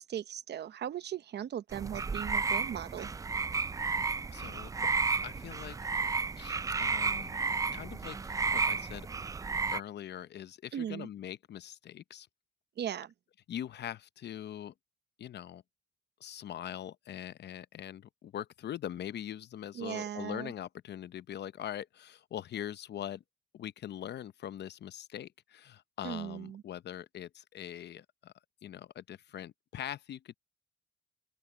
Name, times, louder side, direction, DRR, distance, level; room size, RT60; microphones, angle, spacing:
voice 1, 0.0-3.1 10.7-11.1 12.8-13.1 19.7-20.5 26.0-26.6, right 10 dB, 60° right, 0.9 m, -38 dB
sound 1, 1.7-9.8, right 4 dB, 15° right, 0.3 m, -32 dB
voice 2, 4.3-4.9 5.2-5.8 6.4-7.3 7.7-9.1 9.7-12.3 13.5-14.7 15.2-15.6 16.2-23.2 23.5-28.3 28.6-30.3, left 10 dB, 60° left, 0.7 m, -42 dB
open air
cardioid pair, 90°, 20 cm